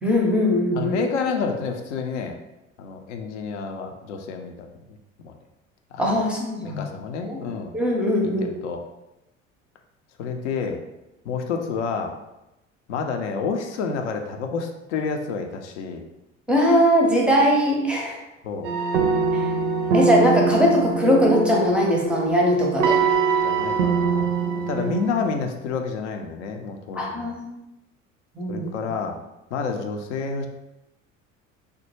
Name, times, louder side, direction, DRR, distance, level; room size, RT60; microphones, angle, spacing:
voice 1, 0.0-1.0 6.0-6.9 7.2-7.4 7.7-8.6 16.5-18.2 19.3-19.5 19.9-23.0 24.7-24.9 27.0-27.6 28.4-28.7, equal, 5° right, -2 dB, 0.6 m, -20 dB
voice 2, 0.7-2.4 2.8-5.0 5.2-5.3 5.9-6.1 6.6-7.7 8.2-8.8 10.2-10.8 11.3-12.1 12.9-16.1 18.4-18.7 22.8-22.9 23.4-27.3 28.5-29.2 29.5-30.5, left 5 dB, 65° left, 4 dB, 0.5 m, -29 dB
sound 1, 18.6-25.3, right 5 dB, 65° right, 0.5 m, -23 dB
3.2 x 2.1 x 3.0 m, 0.94 s
figure-of-eight pair, 65°, 39 cm